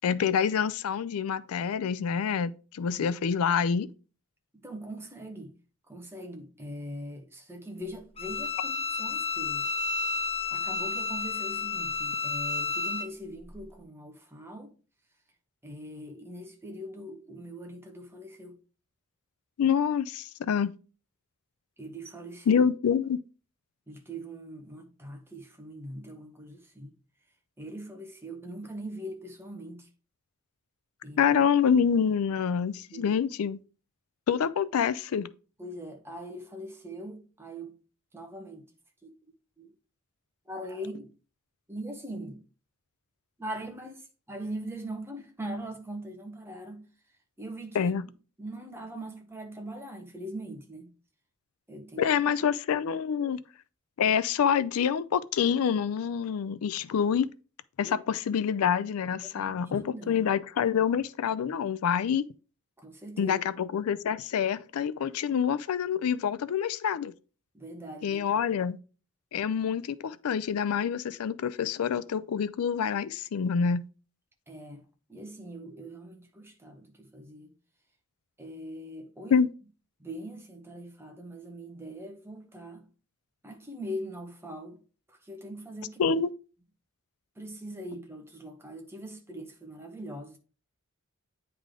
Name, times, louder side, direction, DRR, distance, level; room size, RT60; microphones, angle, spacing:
voice 1, 0.0-3.9 19.6-20.7 22.5-23.2 31.2-33.6 34.3-35.3 47.7-48.1 52.0-53.4 54.0-57.3 57.8-62.2 63.2-67.1 68.0-68.8 69.3-73.8 79.3-79.5 86.0-86.3, left 7 dB, 75° left, 0.4 m, -26 dB
voice 2, 4.6-5.5 5.9-9.7 10.5-14.7 15.6-18.6 21.8-22.6 23.9-26.9 27.6-29.9 31.0-31.3 32.9-33.1 35.6-37.8 38.1-38.6 39.0-39.1 39.6-39.7 40.5-41.1 41.7-42.4 43.4-44.0 44.3-46.8 47.4-47.9 48.4-50.9 51.7-52.0 57.8-57.9 59.2-59.5 59.8-60.2 62.8-63.4 67.5-68.2 74.5-74.8 75.1-77.5 78.4-79.4 80.0-82.8 83.4-84.8 85.1-86.0 87.4-90.4, right 1 dB, 10° right, 1.1 m, -41 dB
Bowed string instrument, 8.2-13.1, left 4 dB, 25° left, 0.7 m, -31 dB
9.5 x 3.5 x 3.7 m
head